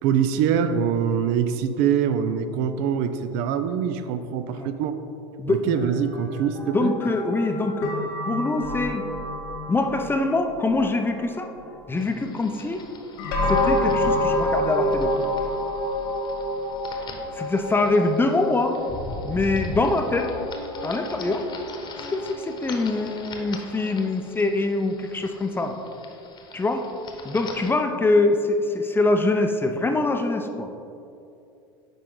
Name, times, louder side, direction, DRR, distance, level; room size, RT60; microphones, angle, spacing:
voice 1, 0.0-4.9 5.5-6.9, right 8 dB, 55° right, 10 dB, 0.6 m, -24 dB
voice 2, 5.4-5.8 6.7-9.1 9.7-11.5 11.9-12.8 13.5-15.2 17.3-18.8 19.2-20.3 20.8-21.4 22.1-25.8 26.5-26.9 27.2-30.7, left 2 dB, 15° left, 5 dB, 0.6 m, -24 dB
sound 1, 5.7-11.4 13.2-24.0, left 1 dB, 65° left, 1.5 m, -29 dB
sound 2, 12.0-27.7, left 3 dB, 30° left, 1.1 m, -41 dB
9.0 x 5.0 x 3.8 m, 2.6 s
hypercardioid pair, 80°, 15 cm